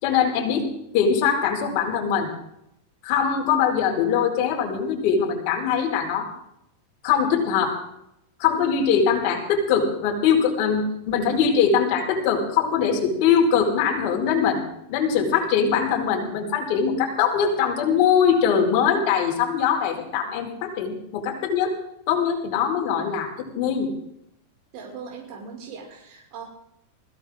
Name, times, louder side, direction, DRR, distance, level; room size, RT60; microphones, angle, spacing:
voice 1, 0.0-0.7 0.9-2.3 3.0-6.3 7.0-7.8 8.4-14.6 14.9-21.7 22.1-23.9, left 7 dB, 50° left, 1 dB, 5.3 m, -22 dB
voice 2, 24.7-26.4, right 5 dB, 45° right, -2 dB, 6.0 m, -39 dB
21.0 x 17.0 x 3.8 m, 0.77 s
supercardioid pair, 150°, 0 cm